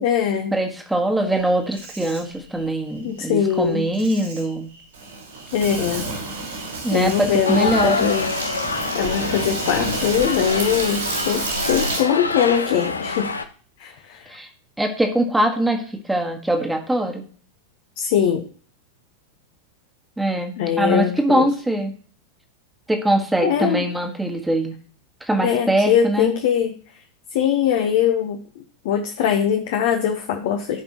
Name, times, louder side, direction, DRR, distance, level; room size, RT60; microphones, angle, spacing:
voice 1, 0.0-0.5 3.0-3.8 5.5-6.1 6.9-8.3 8.9-13.3 13.8-14.3 18.0-18.5 20.6-21.5 23.4-23.8 25.4-26.8 27.3-30.8, left 8 dB, 50° left, 5 dB, 1.0 m, -22 dB
voice 2, 0.5-4.7 6.8-8.1 14.3-14.5 14.8-17.2 20.2-21.9 22.9-24.7 25.3-26.3, right 1 dB, 5° right, 4 dB, 1.6 m, -22 dB
Insect, 1.3-12.0, right 2 dB, 65° right, 4.1 m, -30 dB
sound 1, 7.4-13.4, left 3 dB, 80° left, 0.7 m, -27 dB
15.5 x 5.2 x 3.0 m, 0.43 s
figure-of-eight pair, 90°, 0 cm